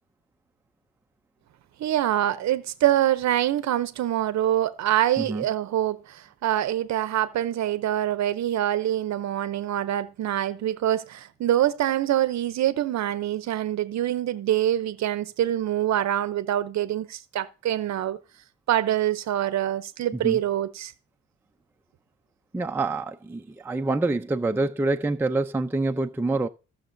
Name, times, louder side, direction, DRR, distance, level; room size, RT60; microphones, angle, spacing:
voice 1, 1.8-18.2 18.7-20.9, right 12 dB, 65° right, 0.7 m, -25 dB
voice 2, 22.5-26.5, right 2 dB, 5° right, 0.5 m, -26 dB
18.5 x 6.5 x 2.6 m
cardioid pair, 90°, 30 cm